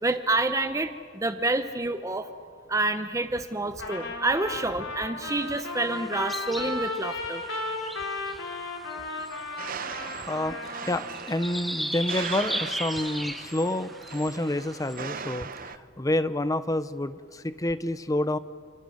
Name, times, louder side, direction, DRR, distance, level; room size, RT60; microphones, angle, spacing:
voice 1, 0.0-2.3 2.7-7.4, right 2 dB, 15° right, 9 dB, 0.8 m, -28 dB
Trumpet, 3.8-11.2, left 2 dB, 85° left, 3.4 m, -35 dB
sound 1, 5.2-15.0, equal, ahead, 1.1 m, -38 dB
sound 2, 9.6-15.8, right 6 dB, 45° right, 0.8 m, -39 dB
voice 2, 10.3-18.4, left 1 dB, 15° left, 13 dB, 0.7 m, -29 dB
28.5 x 27.0 x 6.6 m, 2.2 s
head